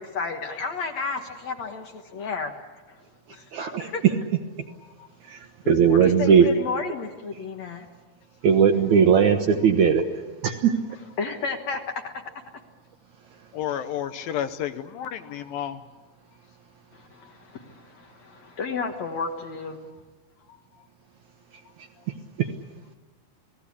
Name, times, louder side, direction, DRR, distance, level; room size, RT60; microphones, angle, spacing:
voice 1, 0.0-2.6 2.9-3.0 3.3-3.5 3.8-4.0 6.0-7.9 11.2-12.2 16.9-20.0, left 5 dB, 55° left, 4 dB, 2.1 m, -32 dB
voice 2, 3.5-3.9 5.3-6.4 8.4-10.1 10.4-10.7 22.4-22.5, right 7 dB, 65° right, 5 dB, 2.0 m, -18 dB
voice 3, 5.6-6.6 13.5-15.8 17.2-17.3 20.5-20.9 21.7-21.8, left 10 dB, 75° left, 9 dB, 2.5 m, -33 dB
29.5 x 19.0 x 8.5 m, 1.3 s
omnidirectional pair, 4.5 m